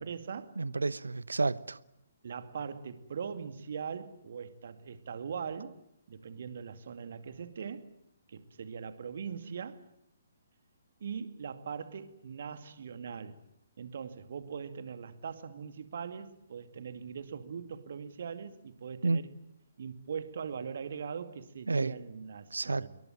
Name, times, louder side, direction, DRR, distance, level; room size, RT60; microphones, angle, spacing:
voice 1, 0.0-0.5 2.2-5.8 6.1-7.9 8.3-9.8 11.0-13.4 13.8-19.3 19.8-22.9, right 6 dB, 50° right, 2.3 m, -41 dB
voice 2, 0.6-1.8 19.0-19.2 21.7-21.9 22.5-22.9, right 3 dB, 70° right, 1.1 m, -30 dB
27.5 x 23.0 x 8.9 m
figure-of-eight pair, 130°, 0 cm